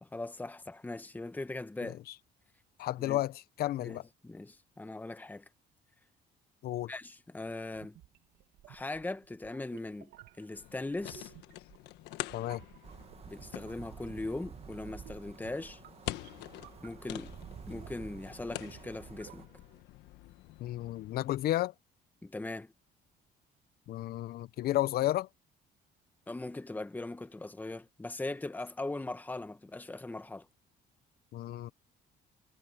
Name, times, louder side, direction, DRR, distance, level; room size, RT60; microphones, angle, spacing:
voice 1, 0.0-2.0 3.0-3.2 3.8-5.4 6.9-8.0 8.7-10.1 10.4-11.3 13.3-15.8 16.8-17.3 17.7-19.5 22.2-22.7 26.3-30.5, left 2 dB, 10° left, 1.3 m, -40 dB
voice 2, 2.8-4.0 6.6-6.9 12.3-12.6 20.6-21.7 23.9-25.3 31.3-31.7, left 14 dB, 65° left, 0.6 m, -32 dB
sound 1, 7.8-19.8, right 14 dB, 75° right, 2.1 m, -58 dB
sound 2, 10.5-21.4, left 16 dB, 85° left, 1.4 m, -46 dB
sound 3, 12.8-19.5, right 7 dB, 35° right, 1.6 m, -50 dB
cardioid pair, 110°, 17 cm